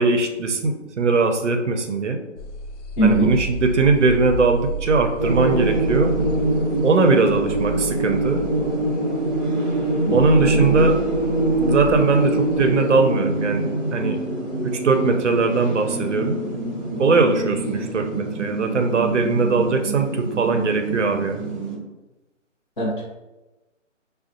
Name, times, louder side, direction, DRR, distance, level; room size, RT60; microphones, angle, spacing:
voice 1, 0.0-2.2 3.0-6.1 6.8-8.4 10.1-11.0 11.6-14.2 14.6-16.4 17.0-21.4, right 3 dB, 65° right, 5 dB, 0.6 m, -20 dB
sound 1, 2.4-9.4 9.7-13.0, right 1 dB, 65° left, 0.5 m, -32 dB
voice 2, 3.0-3.3 10.1-10.9 22.8-23.1, right 2 dB, 40° left, -6 dB, 0.8 m, -21 dB
sound 2, 5.2-21.7, right 2 dB, 35° right, 0.8 m, -25 dB
5.3 x 2.3 x 2.5 m, 1.1 s
hypercardioid pair, 170°, 38 cm